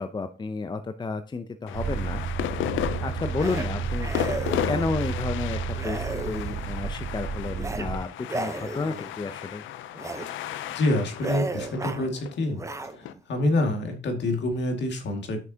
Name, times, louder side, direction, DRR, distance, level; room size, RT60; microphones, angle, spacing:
voice 1, 0.0-2.2 3.0-4.1 4.6-9.6, left 3 dB, 20° left, 9 dB, 0.6 m, -31 dB
sound 1, 1.7-13.1, left 12 dB, 80° left, 0.5 m, -34 dB
sound 2, 1.7-8.0, right 6 dB, 70° right, 1.5 m, -32 dB
sound 3, 3.4-3.7 4.0-4.9 5.7-6.7 7.5-7.9 8.2-9.1 9.9-10.3 10.6-10.8 11.2-12.1 12.5-13.2, right 2 dB, 15° right, 0.8 m, -34 dB
voice 2, 10.7-12.6 13.0-13.1 13.3-15.4, left 1 dB, 65° left, 4 dB, 2.1 m, -26 dB
9.4 x 5.9 x 2.8 m, 0.35 s
cardioid pair, 90°, 20 cm